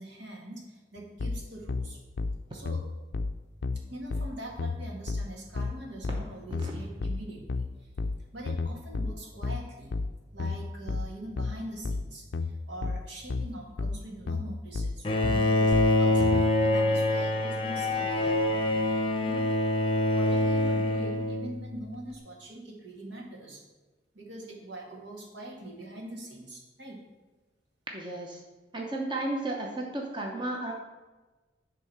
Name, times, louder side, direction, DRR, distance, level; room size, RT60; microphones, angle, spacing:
voice 1, 0.0-2.0 2.5-2.8 3.9-7.9 8.3-9.9 10.3-18.4 19.2-19.5 20.1-23.6 24.1-27.0, right 1 dB, 75° right, -2 dB, 2.1 m, -43 dB
sound 1, 1.2-16.4, left 3 dB, 65° left, 0.4 m, -32 dB
Bowed string instrument, 15.0-21.8, left 1 dB, 30° left, 0.7 m, -25 dB
voice 2, 27.9-28.4 28.7-30.7, right 2 dB, 25° right, 0 dB, 0.9 m, -33 dB
10.5 x 3.7 x 5.9 m, 1.2 s
head